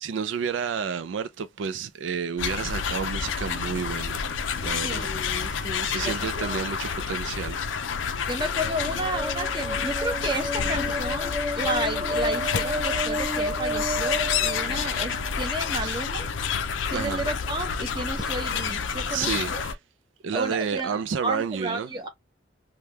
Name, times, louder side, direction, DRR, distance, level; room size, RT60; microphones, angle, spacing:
voice 1, 0.0-5.1 5.8-7.6 15.8-16.0 16.9-17.2 19.1-19.8 20.2-21.9, right 6 dB, 80° right, 0.4 m, -30 dB
sound 1, 2.4-19.7, left 6 dB, 85° left, 0.5 m, -29 dB
voice 2, 4.8-6.7 8.3-16.3 16.9-19.6 20.3-22.1, right 1 dB, 25° right, 0.7 m, -32 dB
sound 2, 8.5-15.3, equal, 5° right, 0.3 m, -32 dB
3.4 x 2.2 x 2.7 m
head